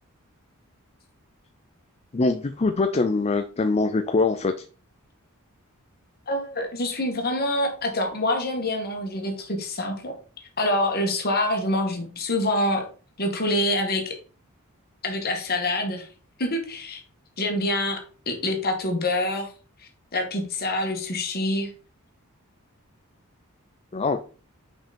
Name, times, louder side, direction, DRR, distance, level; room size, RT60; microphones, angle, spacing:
voice 1, 2.1-4.5 23.9-24.2, left 3 dB, 30° left, 8 dB, 0.4 m, -23 dB
voice 2, 6.3-10.1 10.6-12.8 13.2-14.1 15.0-16.1 16.4-17.0 17.4-19.5 20.1-21.7, left 1 dB, 45° left, 3 dB, 1.8 m, -26 dB
6.0 x 5.2 x 4.2 m, 0.38 s
head